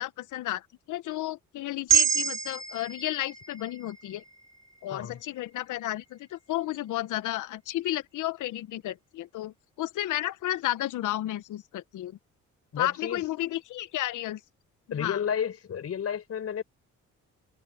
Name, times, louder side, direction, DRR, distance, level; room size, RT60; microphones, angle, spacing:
voice 1, 0.0-4.2 4.8-12.2 12.8-14.4 15.0-15.2, left 14 dB, 80° left, 1.1 m, -32 dB
sound 1, 1.9-6.2, right 9 dB, 45° right, 4.4 m, -29 dB
voice 2, 12.7-13.2 14.9-16.6, left 8 dB, 55° left, 4.5 m, -31 dB
cardioid pair, 90°, 30 cm